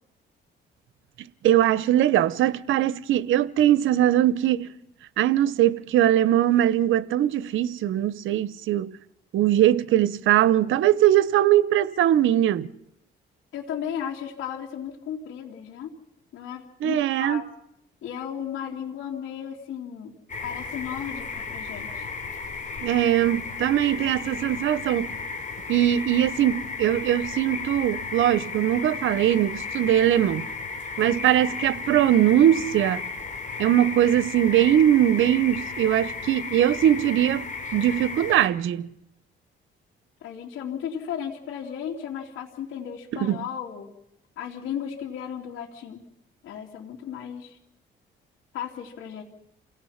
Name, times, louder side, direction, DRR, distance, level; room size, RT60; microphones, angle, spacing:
voice 1, 1.4-4.7 5.2-8.9 9.3-12.7 16.8-17.4 22.8-25.2 25.7-30.5 31.0-33.1 33.6-38.9 43.2-43.4, right 12 dB, 80° right, 0.8 m, -21 dB
voice 2, 13.5-16.0 16.3-17.5 18.0-20.1 20.4-22.1 40.2-43.9 44.4-46.0 46.4-47.6 48.5-49.2, left 8 dB, 85° left, 3.0 m, -35 dB
sound 1, 20.3-38.5, left 4 dB, 40° left, 3.2 m, -34 dB
28.5 x 17.5 x 5.8 m
cardioid pair, 90°, 20 cm